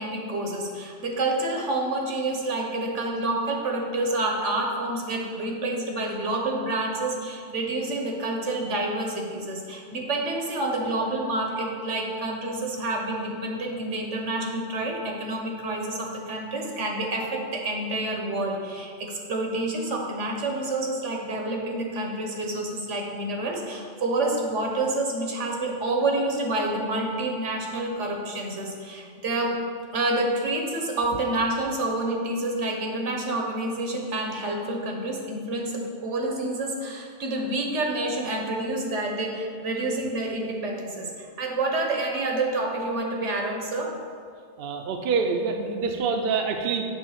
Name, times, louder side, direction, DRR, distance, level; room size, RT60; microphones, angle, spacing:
voice 1, 0.0-29.6 29.9-43.9, right 2 dB, 85° right, 0 dB, 1.4 m, -28 dB
voice 2, 44.6-46.9, right 5 dB, 60° right, 4 dB, 0.7 m, -26 dB
8.1 x 3.5 x 6.5 m, 2.1 s
omnidirectional pair, 1.2 m